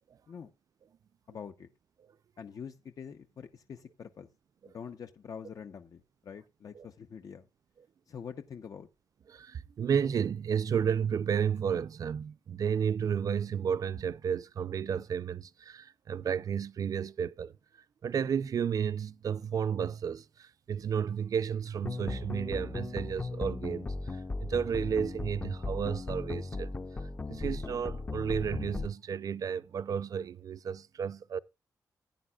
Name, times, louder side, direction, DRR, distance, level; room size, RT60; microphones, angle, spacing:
voice 1, 1.3-1.7 2.4-4.3 4.6-7.5 8.1-8.9, left 7 dB, 60° left, 0.9 m, -45 dB
voice 2, 9.3-17.5 18.0-26.7 27.0-31.4, right 7 dB, 60° right, 0.5 m, -32 dB
sound 1, 21.8-28.9, left 3 dB, 25° left, 0.7 m, -37 dB
16.0 x 9.7 x 2.4 m
wide cardioid pair, 150°, 7 cm